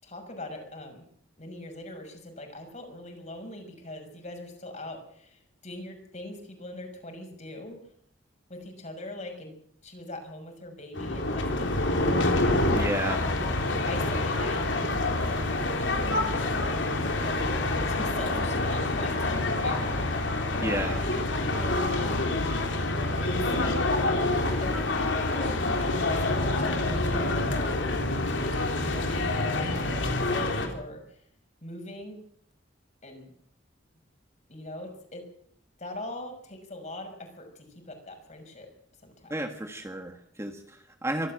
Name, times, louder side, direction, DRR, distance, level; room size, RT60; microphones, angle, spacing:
voice 1, 0.0-1.0 1.4-7.8 8.5-11.8 12.3-13.3 13.8-15.0 15.8-16.2 17.1-22.4 23.2-23.9 24.6-24.9 25.3-27.8 28.8-31.2 31.6-32.2 33.0-33.3 34.5-35.3 35.8-38.7 39.0-39.4, left 1 dB, 40° left, 4 dB, 6.2 m, -41 dB
sound 1, 10.9-30.7, left 2 dB, 75° left, 3.7 m, -27 dB
voice 2, 12.7-13.2 20.6-21.0 39.3-41.3, right 1 dB, 15° right, 5 dB, 1.6 m, -32 dB
24.5 x 14.0 x 7.8 m, 0.64 s
head